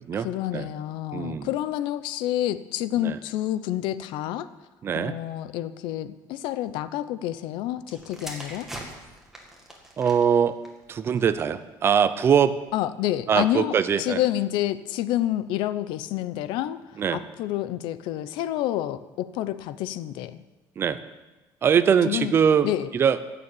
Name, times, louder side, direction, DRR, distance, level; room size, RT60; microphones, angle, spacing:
voice 1, 0.2-4.5 4.9-8.7 12.7-20.4 22.0-22.3 22.6-22.9, left 13 dB, 90° left, 14 dB, 0.7 m, -28 dB
voice 2, 1.1-1.5 3.0-3.2 4.8-5.2 10.0-10.6 10.9-12.6 13.3-14.2 17.0-17.2 20.8-21.0 21.6-23.2, right 7 dB, 30° right, 12 dB, 0.7 m, -22 dB
sound 1, 7.8-11.6 12.4-12.7, right 1 dB, 5° right, 1.9 m, -43 dB
15.0 x 7.0 x 8.6 m, 1.1 s
cardioid pair, 170°, 8 cm